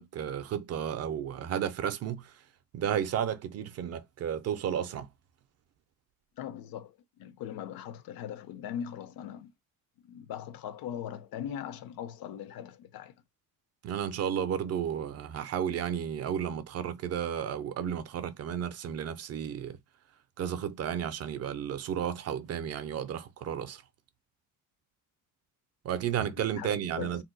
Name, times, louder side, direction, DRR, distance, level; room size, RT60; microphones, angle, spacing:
voice 1, 0.0-2.3 2.7-5.1 13.8-19.8 20.4-23.8 25.8-27.2, right 9 dB, 45° right, 0.4 m, -33 dB
voice 2, 6.4-9.5 10.0-13.1 26.4-27.2, left 9 dB, 70° left, 0.6 m, -40 dB
2.7 x 2.1 x 3.9 m
cardioid pair, 150°, 37 cm